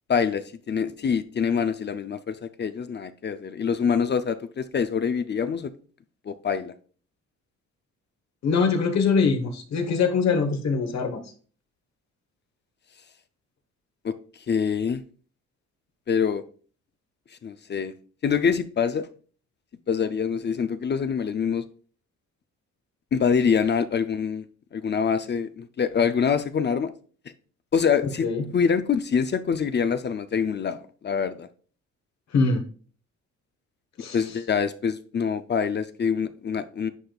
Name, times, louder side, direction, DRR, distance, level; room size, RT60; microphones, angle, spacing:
voice 1, 0.1-5.7 6.3-6.7 14.0-14.2 14.5-15.0 16.1-16.4 17.4-17.9 18.2-19.1 19.9-21.6 23.1-24.4 24.7-26.9 27.7-28.3 28.5-31.5 34.1-36.9, left 6 dB, 35° left, 0.5 m, -25 dB
voice 2, 8.4-11.2 28.2-28.5 32.3-32.6 34.0-34.2, left 5 dB, 60° left, 1.3 m, -23 dB
9.8 x 5.1 x 2.4 m
cardioid pair, 90°, 30 cm